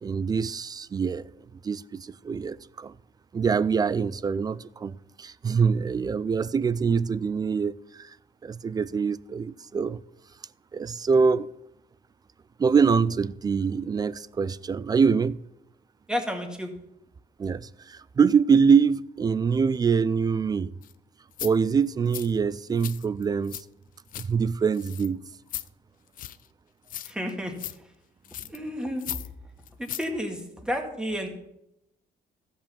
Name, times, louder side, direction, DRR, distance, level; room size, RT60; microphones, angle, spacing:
voice 1, 0.0-1.3 1.6-2.9 3.3-8.1 8.4-10.0 10.7-11.5 12.6-15.4 17.4-20.7 21.4-23.6 24.2-25.2, right 5 dB, 25° right, 0.3 m, -24 dB
voice 2, 16.1-16.7 27.0-27.5 28.5-29.2 29.8-31.3, equal, 5° right, 1.9 m, -31 dB
sound 1, 20.8-20.9 21.3-21.5 22.1-22.3 22.8-23.6 23.9-24.3 24.7-25.1 25.5-25.7 26.2-26.5 26.9-27.3 27.6-27.8 28.2-28.6 29.0-29.3 29.6-30.1 30.4-30.5, left 12 dB, 55° left, 0.5 m, -37 dB
14.0 x 5.5 x 6.9 m
cardioid pair, 110°, 17 cm